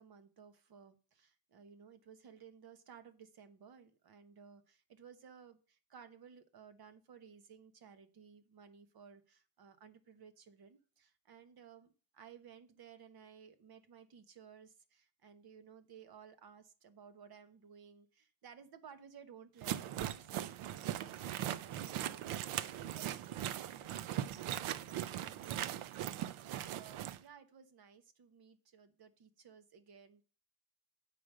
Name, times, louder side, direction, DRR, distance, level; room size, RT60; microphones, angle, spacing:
voice 1, 0.0-23.2 23.5-24.3 24.7-30.2, right 7 dB, 50° right, 9 dB, 1.1 m, -58 dB
sound 1, 19.6-27.2, right 11 dB, 90° right, 0.7 m, -40 dB
8.9 x 5.1 x 6.2 m, 0.36 s
cardioid pair, 170°, 48 cm